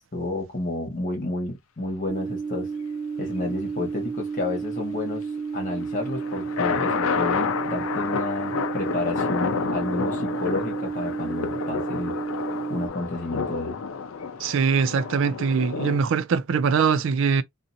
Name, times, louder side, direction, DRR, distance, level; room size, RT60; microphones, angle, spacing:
voice 1, 0.1-2.7 3.2-5.3 5.5-12.1 12.7-13.8, left 2 dB, 35° left, 1.2 m, -30 dB
sound 1, 2.1-12.9, right 5 dB, 10° right, 0.6 m, -32 dB
sound 2, 5.8-16.0, left 5 dB, 70° left, 0.4 m, -30 dB
voice 2, 14.4-17.4, right 5 dB, 65° right, 0.3 m, -22 dB
2.6 x 2.4 x 2.6 m
head